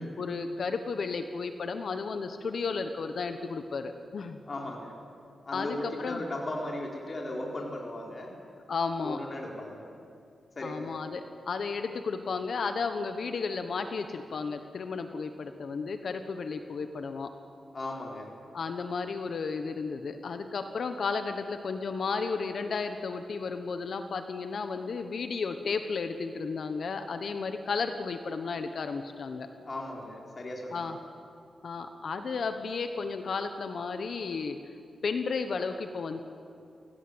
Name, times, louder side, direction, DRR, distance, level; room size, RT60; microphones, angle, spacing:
voice 1, 0.2-4.4 5.5-6.2 8.7-9.2 10.6-17.3 18.5-29.5 30.7-31.0 31.6-34.6 35.0-36.2, left 4 dB, 65° left, 7 dB, 1.2 m, -33 dB
voice 2, 4.5-4.9 5.4-8.4 9.0-9.9 10.6-10.9 17.7-18.3 29.7-30.8, left 1 dB, 40° left, -1 dB, 4.1 m, -37 dB
27.5 x 17.5 x 8.0 m, 2.5 s
cardioid pair, 85°, 0 cm